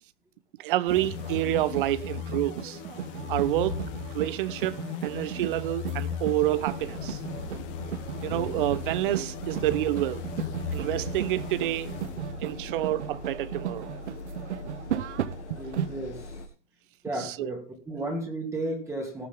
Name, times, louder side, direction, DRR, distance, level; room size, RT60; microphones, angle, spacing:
voice 1, 0.6-2.8 3.3-3.8 4.1-7.2 8.2-11.9 12.4-13.9 14.9-15.6 17.1-17.5, right 15 dB, 45° right, 0.9 m, -29 dB
sound 1, 0.8-15.9, right 10 dB, 70° right, 1.0 m, -36 dB
sound 2, 0.9-12.6, left 6 dB, 30° left, 2.5 m, -37 dB
sound 3, 6.5-16.5, left 2 dB, 70° left, 2.4 m, -42 dB
voice 2, 15.6-16.3 17.0-19.3, right 2 dB, 10° right, 2.7 m, -33 dB
18.5 x 7.1 x 3.7 m
hypercardioid pair, 140°, 36 cm